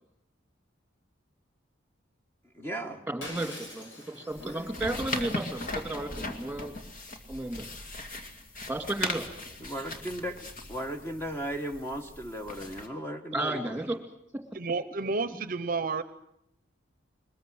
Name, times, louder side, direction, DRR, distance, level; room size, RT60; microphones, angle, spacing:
voice 1, 2.5-3.1 4.4-4.7 9.6-10.4 10.7-13.8, equal, 15° left, 5 dB, 1.4 m, -36 dB
voice 2, 3.1-6.7 7.3-7.7 8.7-9.3 13.3-14.0 15.3-15.4, right 2 dB, 5° right, 6 dB, 2.5 m, -33 dB
Shatter, 3.2-5.9, left 1 dB, 80° left, 6.7 m, -45 dB
sound 1, 4.3-12.9, left 2 dB, 45° left, 2.3 m, -39 dB
voice 3, 14.5-16.0, right 4 dB, 50° right, 13 dB, 0.8 m, -30 dB
22.5 x 20.5 x 7.9 m, 0.79 s
head